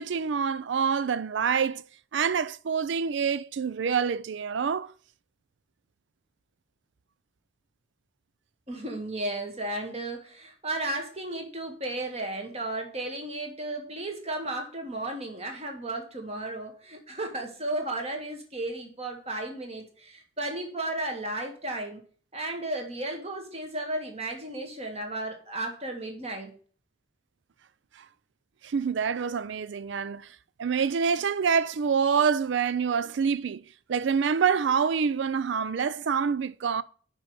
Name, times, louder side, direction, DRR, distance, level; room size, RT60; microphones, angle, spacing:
voice 1, 0.0-1.8 2.1-4.9 28.0-28.1 28.6-33.6 33.9-36.8, right 6 dB, 60° right, 0.4 m, -26 dB
voice 2, 8.7-22.0 22.3-26.5, right 1 dB, 30° right, 1.8 m, -34 dB
6.1 x 5.2 x 6.9 m
head